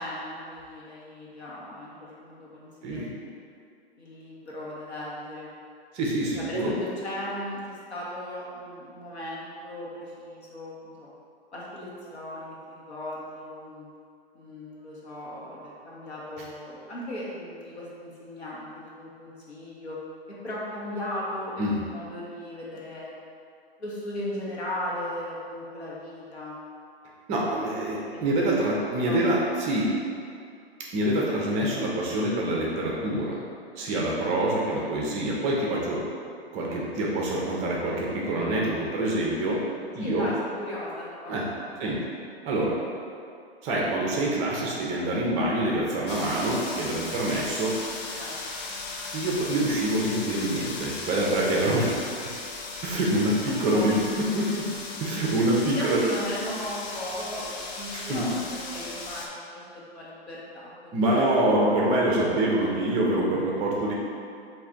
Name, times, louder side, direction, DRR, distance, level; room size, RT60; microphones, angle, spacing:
voice 1, 0.0-3.2 4.0-5.5 6.3-11.1 11.5-13.9 14.3-20.0 20.4-23.1 23.8-26.6 28.1-28.4 28.8-29.2 34.2-34.3 40.0-41.7 48.2-48.4 53.4-54.1 55.6-61.2, left 1 dB, 90° left, -6 dB, 1.1 m, -37 dB
voice 2, 5.9-6.7 21.6-21.8 27.3-29.9 30.9-33.4 33.8-36.0 36.5-39.6 39.9-40.3 41.3-41.4 41.8-42.0 42.4-42.8 43.6-47.7 49.1-52.1 52.8-54.7 55.0-56.0 57.9-58.2 60.9-63.9, right 1 dB, 20° right, -3 dB, 0.4 m, -26 dB
sound 1, 46.1-59.3, left 3 dB, 40° left, 0.5 m, -37 dB
3.2 x 2.5 x 3.7 m, 2.4 s
hypercardioid pair, 115°, 32 cm